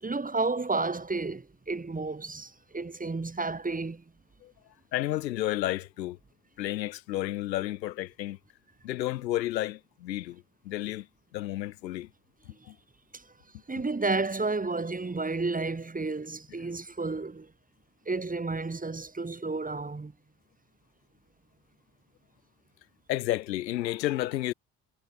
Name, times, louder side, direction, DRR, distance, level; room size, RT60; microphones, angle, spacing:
voice 1, 0.0-4.0 13.1-13.2 13.7-17.5 18.1-20.1, right 3 dB, 15° right, 2.1 m, -31 dB
voice 2, 4.9-6.2 6.6-8.4 8.8-11.1 11.3-12.1 12.7-12.8 23.1-24.5, left 15 dB, 85° left, 1.3 m, -31 dB
hypercardioid pair, 55°, 50 cm